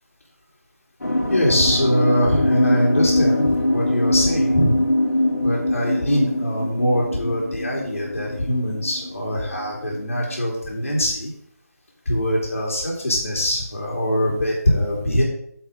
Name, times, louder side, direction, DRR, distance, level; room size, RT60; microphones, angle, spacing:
sound 1, 1.0-10.4, left 1 dB, 75° left, 2.0 m, -23 dB
voice 1, 1.3-4.8 5.4-11.3 12.0-15.2, equal, 55° left, -3 dB, 3.0 m, -22 dB
8.7 x 5.4 x 5.2 m, 0.71 s
figure-of-eight pair, 165°, 9 cm